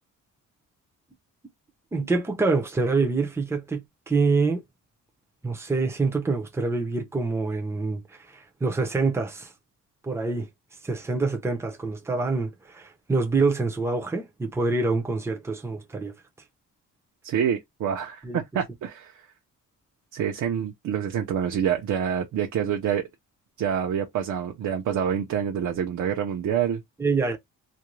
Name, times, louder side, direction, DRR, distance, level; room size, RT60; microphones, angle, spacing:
voice 1, 1.9-4.6 5.4-9.5 10.0-10.5 10.8-16.1 18.2-18.4 27.0-27.4, right 3 dB, 10° right, 0.6 m, -26 dB
voice 2, 17.2-19.2 20.1-23.1 23.6-26.8, right 8 dB, 65° right, 0.7 m, -27 dB
2.6 x 2.2 x 3.0 m
cardioid pair, 160°, 31 cm